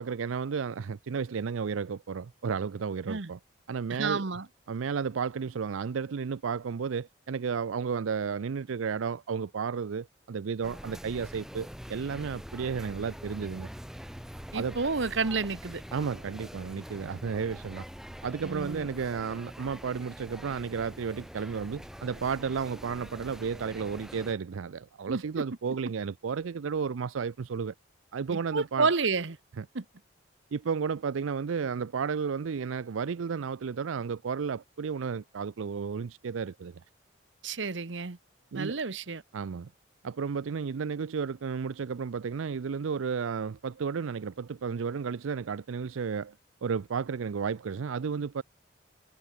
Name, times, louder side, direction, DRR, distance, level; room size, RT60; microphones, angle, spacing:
voice 1, 0.0-3.4 3.7-4.2 4.7-13.7 14.5-14.8 15.9-17.8 18.2-27.7 28.1-28.9 29.6-29.7 30.5-36.8 38.5-38.8 39.3-39.7 40.0-46.3 46.6-48.4, right 6 dB, 85° right, 0.5 m, -33 dB
voice 2, 3.9-4.5 14.5-15.8 18.4-18.9 25.1-25.4 28.3-29.4 29.7-29.8 37.4-38.2 38.5-39.2, right 4 dB, 65° right, 1.0 m, -30 dB
sound 1, 10.6-24.3, equal, ahead, 3.0 m, -44 dB
head